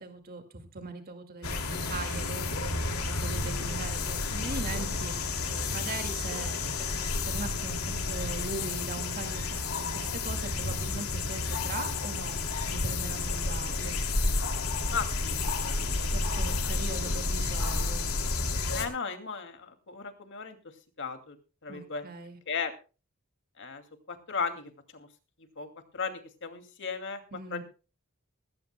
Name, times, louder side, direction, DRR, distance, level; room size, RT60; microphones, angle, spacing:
voice 1, 0.0-12.4 12.7-14.0 16.1-18.1 21.7-22.4 27.3-27.6, right 3 dB, 45° right, 6 dB, 2.1 m, -40 dB
sound 1, 1.4-18.9, left 3 dB, 90° left, 2.6 m, -31 dB
voice 2, 14.9-15.4 15.6-16.0 16.5-16.8 18.7-20.6 21.0-21.4 21.6-22.0 22.5-22.7 23.6-25.1 25.6-25.7 25.9-27.2 27.5-27.6, left 5 dB, 60° left, 7 dB, 2.4 m, -36 dB
19.0 x 17.0 x 2.2 m, 0.34 s
head